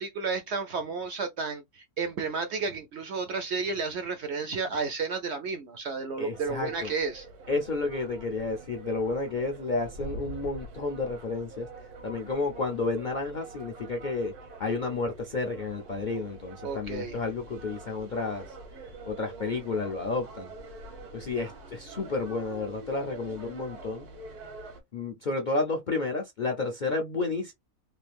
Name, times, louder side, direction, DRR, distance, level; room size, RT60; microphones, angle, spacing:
voice 1, 0.0-7.3 16.6-17.2, right 4 dB, 65° right, 0.7 m, -32 dB
voice 2, 6.2-6.9 7.5-11.7 12.0-14.3 14.6-18.5 19.1-20.5 21.1-24.1 24.9-27.5, left 3 dB, 60° left, 0.5 m, -31 dB
sound 1, 6.3-24.8, right 2 dB, 85° right, 1.6 m, -45 dB
3.2 x 2.6 x 3.3 m
omnidirectional pair, 1.6 m